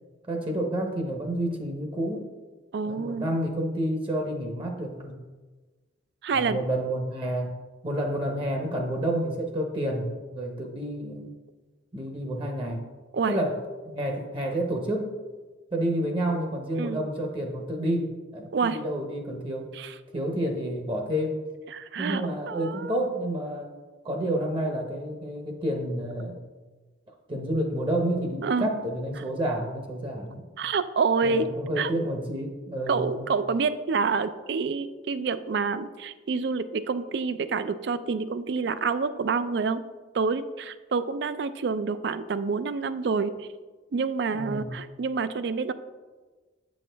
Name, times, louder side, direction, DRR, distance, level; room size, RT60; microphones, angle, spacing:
voice 1, 0.3-2.3 2.9-5.2 6.3-7.5 7.8-11.3 11.9-12.8 13.3-15.2 15.7-19.7 20.1-21.4 22.0-23.7 24.0-26.4 27.3-30.4 31.2-33.3 44.3-44.7, right 1 dB, 25° right, 2 dB, 0.8 m, -29 dB
voice 2, 2.7-3.3 6.2-6.6 13.1-13.3 16.7-17.0 18.5-18.8 19.7-19.9 21.7-23.0 28.4-28.7 30.6-31.5 31.8-31.9 32.9-39.8 40.1-43.5 43.9-45.7, right 4 dB, 55° right, 13 dB, 0.3 m, -27 dB
8.4 x 6.3 x 3.4 m, 1.3 s
head